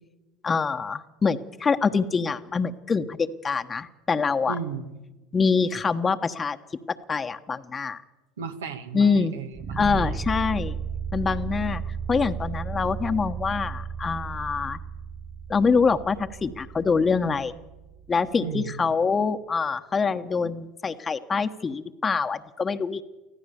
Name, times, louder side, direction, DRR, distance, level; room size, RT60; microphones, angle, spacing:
voice 1, 0.4-4.6 5.3-6.6 7.1-8.0 8.9-9.3 9.7-10.8 11.1-14.8 15.5-17.5 18.1-23.0, left 5 dB, 25° left, 8 dB, 1.1 m, -25 dB
voice 2, 4.5-5.0 8.4-10.2 18.4-18.8, right 6 dB, 80° right, 7 dB, 2.0 m, -35 dB
sound 1, 9.5-18.6, right 6 dB, 30° right, 2.1 m, -34 dB
24.5 x 15.5 x 7.1 m, 1.1 s
hypercardioid pair, 80°, 0 cm